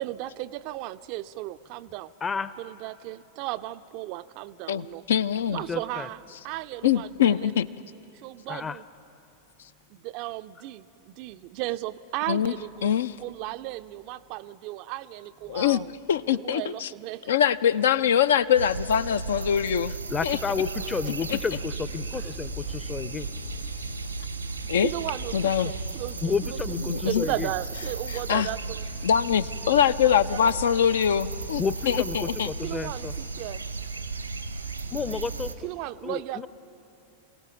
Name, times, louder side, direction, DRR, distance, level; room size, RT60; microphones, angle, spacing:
voice 1, 0.0-2.1 2.6-5.0 5.5-7.5 8.1-8.8 9.9-15.9 16.4-17.3 20.8-20.9 22.2-22.3 24.8-28.9 29.7-30.9 32.6-33.6 35.6-36.5, right 16 dB, 45° right, 13 dB, 0.4 m, -35 dB
voice 2, 2.2-2.5 5.5-6.1 8.5-8.8 20.1-23.3 26.2-27.5 31.6-33.1 34.9-35.5 36.0-36.5, left 5 dB, 20° left, 16 dB, 0.6 m, -31 dB
voice 3, 4.7-5.6 6.8-7.7 12.3-12.5 12.8-13.1 15.5-16.9 17.3-19.9 20.2-20.4 21.3-21.4 24.7-24.9 25.3-25.7 26.9-27.2 28.1-28.5 29.0-32.5, left 9 dB, 60° left, 15 dB, 0.4 m, -23 dB
sound 1, 18.5-35.5, right 4 dB, 85° right, 0.9 m, -35 dB
sound 2, 21.0-33.2, left 6 dB, 85° left, 1.5 m, -46 dB
26.5 x 17.0 x 5.8 m, 3.0 s
figure-of-eight pair, 90°, 0 cm